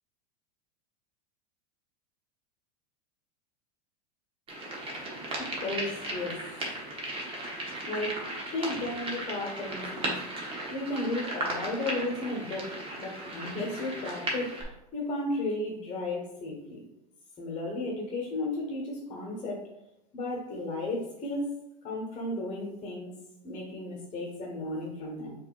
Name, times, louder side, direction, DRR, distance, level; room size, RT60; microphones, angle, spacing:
sound 1, 4.5-14.6, right 1 dB, 25° right, 1.2 m, -36 dB
voice 1, 5.4-6.4 7.8-8.2 8.5-10.1 10.7-14.6 14.9-16.8 17.4-19.6 20.1-21.5 21.8-23.1 23.4-25.3, left 2 dB, 30° left, -1 dB, 1.3 m, -34 dB
4.9 x 2.8 x 2.5 m, 0.88 s
hypercardioid pair, 90°, 21 cm